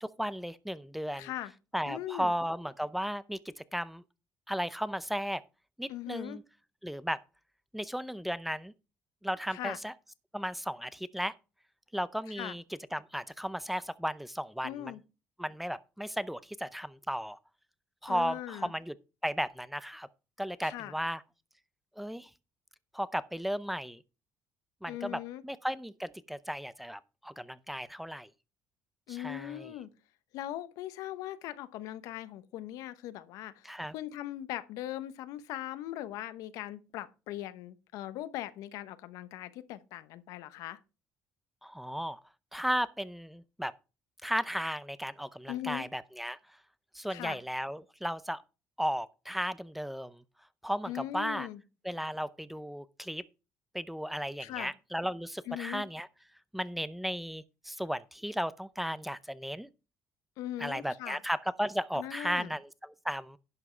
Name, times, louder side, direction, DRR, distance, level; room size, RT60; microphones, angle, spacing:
voice 1, 0.0-1.3 1.7-4.0 4.5-5.4 5.8-6.4 6.8-7.2 7.7-8.7 9.2-9.9 10.3-11.3 11.9-12.6 12.9-14.9 15.4-17.4 18.0-18.9 19.2-20.1 20.4-21.2 22.0-22.3 22.9-24.0 24.8-28.3 29.1-29.7 33.6-33.9 41.6-42.2 42.5-43.7 44.2-46.4 46.9-48.4 48.8-50.2 50.6-51.5 51.8-53.2 53.7-56.1 56.5-59.7 60.6-63.4, equal, 5° right, 0.6 m, -35 dB
voice 2, 1.2-1.5 1.8-2.3 5.9-6.4 9.5-9.8 12.4-12.5 14.6-15.0 18.1-18.7 20.6-20.9 24.9-25.4 29.1-29.9 30.3-40.8 45.5-45.9 47.1-47.4 50.9-51.6 54.4-54.7 55.5-55.8 60.4-61.2 61.9-62.5, left 13 dB, 85° left, 0.9 m, -40 dB
11.0 x 5.9 x 4.5 m
cardioid pair, 105°, 6 cm